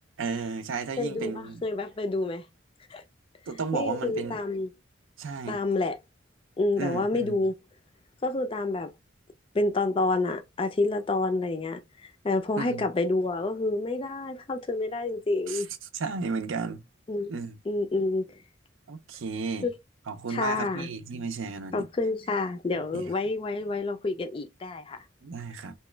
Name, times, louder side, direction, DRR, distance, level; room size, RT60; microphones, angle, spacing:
voice 1, 0.2-1.6 3.5-4.4 5.2-5.6 6.8-7.4 12.6-12.9 15.5-15.6 15.9-16.8 17.3-17.6 18.9-19.7 20.1-21.9 22.9-23.1 25.2-25.7, right 4 dB, 80° right, 0.5 m, -33 dB
voice 2, 1.0-2.4 2.9-3.0 3.7-4.7 5.5-6.0 6.6-7.5 8.2-8.9 9.5-11.8 12.2-15.7 17.1-17.3 17.7-18.3 19.6-19.7 20.3-20.9 21.7-25.0, left 2 dB, 25° left, 0.3 m, -28 dB
2.9 x 2.3 x 3.2 m
head